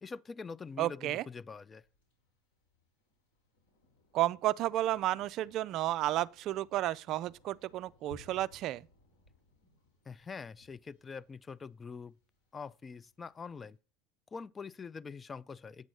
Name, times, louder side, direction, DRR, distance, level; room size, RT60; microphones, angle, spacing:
voice 1, 0.0-1.8 10.1-12.2 12.5-13.8 14.3-15.9, left 5 dB, 25° left, 0.3 m, -44 dB
voice 2, 0.8-1.2 4.1-8.9, right 14 dB, 55° right, 0.3 m, -32 dB
Thunder, 1.8-13.7, left 2 dB, 85° left, 3.2 m, -62 dB
8.2 x 6.1 x 4.7 m
hypercardioid pair, 80°, 0 cm